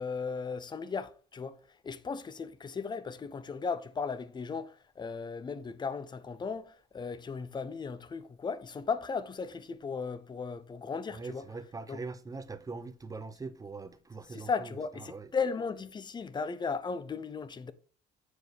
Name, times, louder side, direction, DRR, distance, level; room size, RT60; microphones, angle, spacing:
voice 1, 0.0-1.6 1.8-11.5 11.9-12.0 14.3-17.7, left 5 dB, 25° left, 0.7 m, -36 dB
voice 2, 11.1-14.5 15.0-15.3, right 4 dB, 20° right, 0.8 m, -42 dB
7.9 x 4.8 x 4.9 m
cardioid pair, 110°, 17 cm